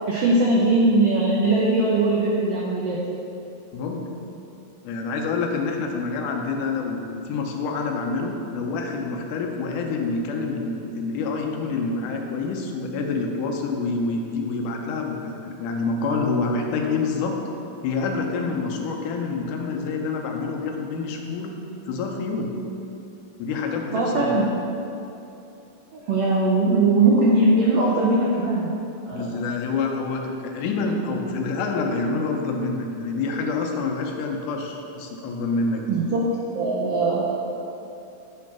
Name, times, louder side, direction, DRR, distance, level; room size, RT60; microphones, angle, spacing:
voice 1, 0.0-3.0 23.9-24.5 25.9-28.7 29.1-29.3 35.9-36.3 36.5-37.3, right 2 dB, 85° right, -4 dB, 1.3 m, -20 dB
voice 2, 3.7-4.1 4.8-17.4 17.8-21.6 21.9-22.5 23.4-24.4 29.1-36.0, left 4 dB, 80° left, 1 dB, 2.2 m, -27 dB
8.7 x 3.1 x 5.9 m, 2.8 s
omnidirectional pair, 3.6 m